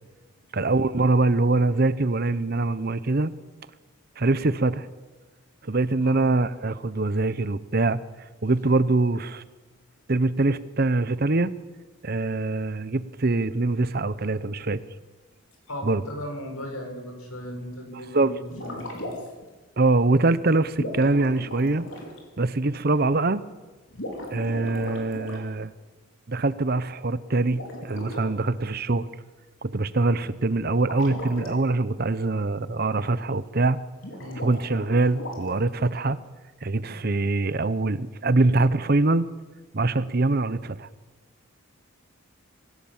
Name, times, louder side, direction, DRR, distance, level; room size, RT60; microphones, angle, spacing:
voice 1, 0.5-3.3 4.2-4.9 5.6-8.0 8.4-9.4 10.1-11.5 12.0-14.8 15.8-16.0 17.9-18.3 19.8-21.8 22.4-23.4 24.3-25.7 26.3-29.1 29.6-33.8 34.4-36.2 36.6-39.3 39.7-40.9, right 2 dB, 45° right, 16 dB, 0.7 m, -23 dB
voice 2, 15.7-19.1 34.2-34.5, left 1 dB, 80° left, 3 dB, 5.7 m, -37 dB
sound 1, 18.4-19.4 20.7-22.2 23.9-25.4 27.5-28.3 30.8-31.5 34.0-35.7, left 1 dB, 60° left, 4.8 m, -37 dB
24.5 x 16.5 x 7.3 m, 1.2 s
head